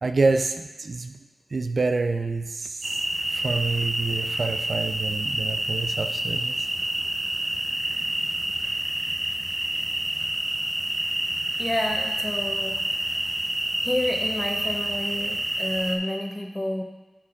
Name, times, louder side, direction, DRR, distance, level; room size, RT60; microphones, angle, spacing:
voice 1, 0.0-1.2 1.5-3.0 3.3-6.7, right 3 dB, 60° right, 7 dB, 0.4 m, -27 dB
sound 1, 2.8-16.0, right 1 dB, 35° right, 0.8 m, -28 dB
voice 2, 11.6-13.4 13.8-16.8, left 1 dB, 20° left, 2 dB, 1.1 m, -30 dB
9.9 x 4.3 x 3.7 m, 1.1 s
cardioid pair, 50°, 0 cm